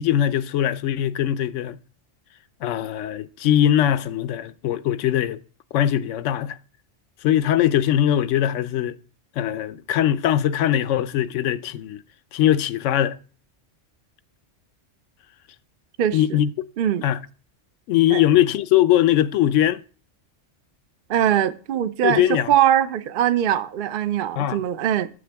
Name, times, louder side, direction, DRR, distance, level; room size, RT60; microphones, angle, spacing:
voice 1, 0.0-1.8 2.6-5.4 5.7-6.6 7.2-9.0 9.4-12.0 12.3-13.2 16.1-16.5 17.0-17.2 17.9-19.8 22.0-22.5 24.4-24.6, left 11 dB, 80° left, 0.9 m, -21 dB
voice 2, 16.0-16.4 16.8-17.0 18.1-18.2 21.1-25.1, right 10 dB, 60° right, 0.6 m, -22 dB
8.7 x 7.7 x 3.4 m
omnidirectional pair, 1.3 m